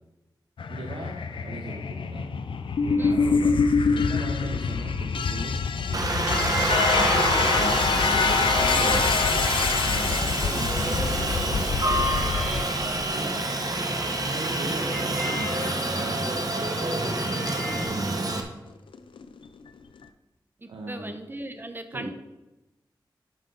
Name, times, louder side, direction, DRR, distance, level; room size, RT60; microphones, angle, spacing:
sound 1, 0.6-13.6 15.3-17.8 18.9-19.5, left 5 dB, 85° left, 0.5 m, -26 dB
voice 1, 0.7-2.3 2.8-3.7 3.9-6.2 6.9-9.5 9.8-12.2 13.1-13.6 14.2-18.4 20.7-21.2 21.9-22.1, right 2 dB, 90° right, 0 dB, 0.9 m, -38 dB
Harmonica, 5.9-17.9, right 2 dB, ahead, 2.3 m, -40 dB
Aircraft, 5.9-18.4, right 2 dB, 45° right, 1.2 m, -27 dB
voice 2, 20.6-22.1, right 1 dB, 25° right, 8 dB, 0.9 m, -38 dB
11.0 x 5.5 x 3.9 m, 1.0 s
cardioid pair, 55°, 8 cm